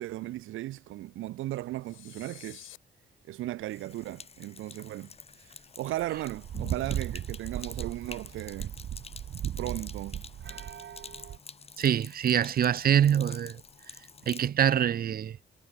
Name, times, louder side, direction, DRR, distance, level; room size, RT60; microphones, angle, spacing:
voice 1, 0.0-2.7 3.3-5.1 5.4-5.5 5.8-8.7 9.6-10.2, right 15 dB, 90° right, 2.4 m, -36 dB
sound 1, 1.8-2.8, left 15 dB, 90° left, 4.0 m, -49 dB
Sink (filling or washing), 3.6-14.5, left 5 dB, 30° left, 1.4 m, -48 dB
sound 2, 6.0-11.4, right 10 dB, 65° right, 2.4 m, -37 dB
voice 2, 11.8-13.6 14.3-15.4, right 9 dB, 50° right, 0.7 m, -25 dB
cardioid pair, 90°, 20 cm